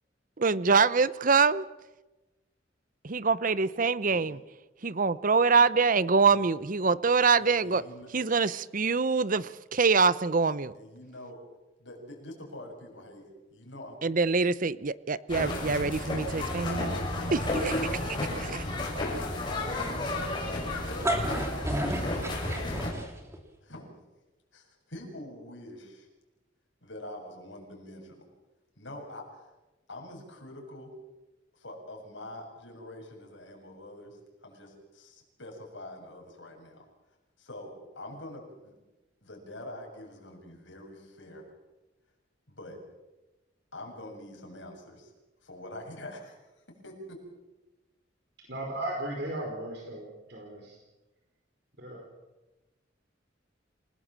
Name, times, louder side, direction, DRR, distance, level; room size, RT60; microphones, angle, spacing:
voice 1, 0.4-1.7 3.0-4.4 4.8-7.8 8.1-10.7 14.0-17.0 17.3-17.8 18.4-18.6, right 4 dB, 45° right, 0.8 m, -25 dB
voice 2, 7.4-8.1 10.7-11.5 11.8-14.0 16.6-20.0 20.7-22.2 23.6-23.9 24.5-26.1 26.8-28.3 28.8-29.5 29.9-30.9 31.5-36.9 37.4-38.7 39.2-41.5 42.5-42.8 43.7-45.1 45.4-46.4 46.7-47.2, left 1 dB, 70° left, 7.4 m, -45 dB
sound 1, 15.3-22.9, left 1 dB, 25° left, 6.7 m, -32 dB
sound 2, 20.8-23.4, right 1 dB, 15° right, 3.2 m, -31 dB
voice 3, 48.5-50.8 51.8-52.0, right 1 dB, 60° right, 4.9 m, -36 dB
28.0 x 18.5 x 7.6 m
head